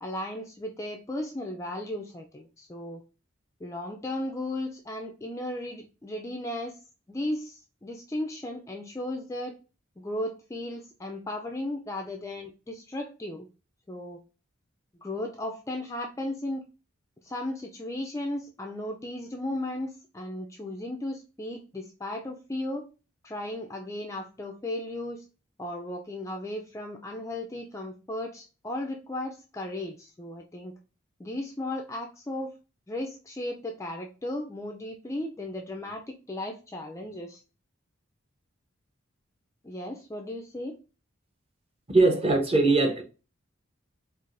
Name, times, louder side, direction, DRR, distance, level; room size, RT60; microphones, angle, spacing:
voice 1, 0.0-3.0 3.6-6.8 7.1-9.6 10.0-13.5 13.9-14.2 15.0-16.6 17.2-22.8 23.2-25.2 25.6-30.7 31.2-32.5 32.9-37.4 39.6-40.8, left 1 dB, 15° left, 0.3 m, -35 dB
voice 2, 41.9-43.0, right 3 dB, 30° right, 0.7 m, -21 dB
4.6 x 2.5 x 2.5 m
head